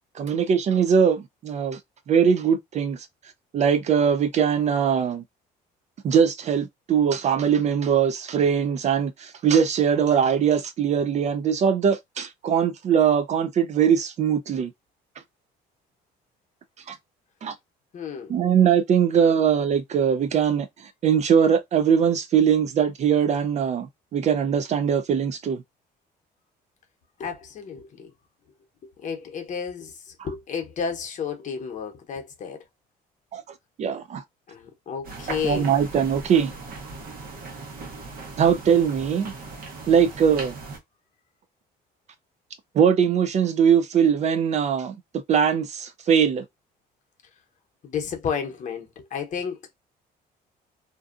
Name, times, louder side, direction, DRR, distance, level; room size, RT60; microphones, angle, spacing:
voice 1, 0.2-1.8 2.1-3.0 3.5-5.2 6.0-14.7 16.9-17.0 17.4-17.5 18.3-20.7 21.0-25.6 33.3-33.4 33.8-34.2 35.4-36.5 38.4-39.3 39.9-40.6 42.7-45.0 45.3-46.4, right 7 dB, 40° right, 0.4 m, -21 dB
voice 2, 17.9-18.4 27.2-28.1 28.8-32.6 34.5-35.7 47.8-49.7, left 6 dB, 50° left, 0.9 m, -32 dB
sound 1, 35.0-40.8, right 3 dB, 60° right, 1.0 m, -38 dB
2.6 x 2.3 x 2.4 m
cardioid pair, 110°, 17 cm